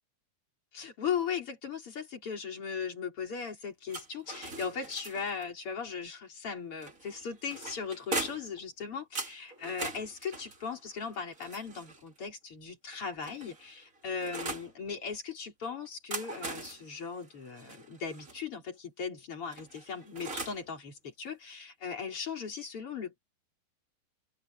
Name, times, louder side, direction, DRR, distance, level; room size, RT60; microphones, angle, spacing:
voice 1, 0.7-23.2, left 6 dB, 30° left, 4.6 m, -38 dB
sound 1, 3.9-5.5 6.8-8.6 9.2-12.1 12.9-14.7 15.9-18.4 19.5-20.7, right 2 dB, 25° right, 1.9 m, -41 dB
open air
omnidirectional pair, 5.1 m